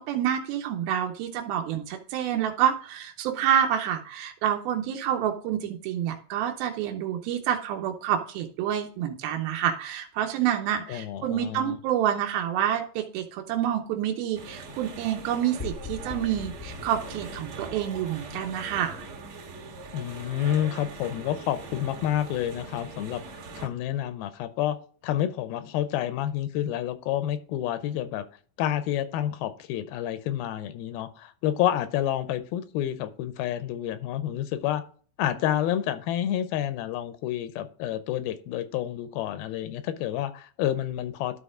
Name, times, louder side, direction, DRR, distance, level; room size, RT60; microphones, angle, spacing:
voice 1, 0.1-19.0, right 10 dB, 85° right, 3 dB, 2.7 m, -28 dB
voice 2, 10.9-11.8 19.9-28.2 28.6-34.8 35.2-41.4, left 11 dB, 90° left, 11 dB, 2.6 m, -29 dB
sound 1, 14.3-23.7, right 3 dB, 45° right, 2.0 m, -42 dB
sound 2, 15.6-20.0, left 6 dB, 20° left, 0.7 m, -42 dB
12.5 x 4.3 x 3.7 m, 0.43 s
omnidirectional pair, 4.2 m